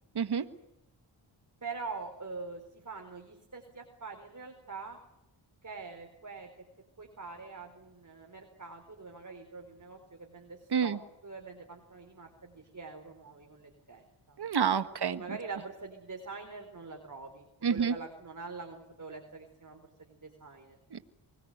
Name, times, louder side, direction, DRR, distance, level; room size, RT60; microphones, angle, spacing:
voice 1, 0.1-0.5 10.7-11.0 14.4-15.2 17.6-17.9 20.9-21.0, right 7 dB, 55° right, 11 dB, 1.7 m, -28 dB
voice 2, 1.6-5.0 5.6-6.5 7.0-11.0 11.2-14.4 15.0-20.8, right 4 dB, 40° right, 3 dB, 4.4 m, -44 dB
24.5 x 20.0 x 8.0 m, 0.90 s
cardioid pair, 60°, 47 cm